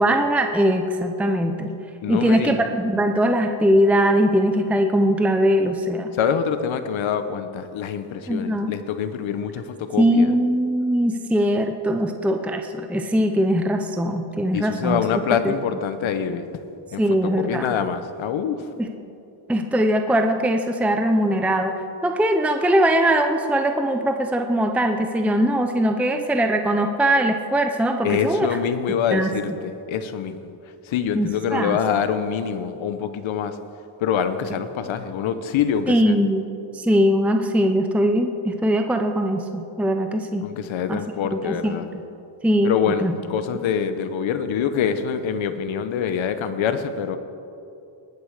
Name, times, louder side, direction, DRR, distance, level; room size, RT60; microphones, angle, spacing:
voice 1, 0.0-1.7 2.1-6.1 8.3-8.7 10.0-15.0 15.4-15.5 17.0-17.7 18.8-18.9 19.5-21.7 22.0-28.5 29.1-29.3 31.1-31.8 35.9-36.4 36.7-40.5 40.9-41.0 41.3-41.7 42.4-42.7 43.0-43.1, equal, 5° right, 5 dB, 0.6 m, -21 dB
voice 2, 2.0-2.6 6.1-10.3 14.5-16.4 16.9-18.6 28.0-30.5 30.8-33.5 34.0-36.1 40.4-41.8 42.6-47.2, left 7 dB, 90° left, 10 dB, 1.1 m, -25 dB
20.5 x 8.1 x 6.6 m, 2.7 s
wide cardioid pair, 130°, 45 cm